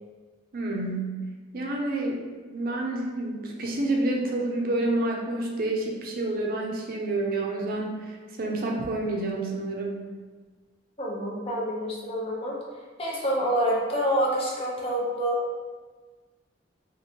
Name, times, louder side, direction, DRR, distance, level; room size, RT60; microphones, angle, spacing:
voice 1, 0.5-1.2 1.5-2.2 2.5-10.1, right 2 dB, 50° right, 0 dB, 0.5 m, -29 dB
voice 2, 11.0-12.6 13.0-15.4, equal, 30° left, -4 dB, 0.6 m, -27 dB
3.0 x 2.5 x 2.8 m, 1.3 s
head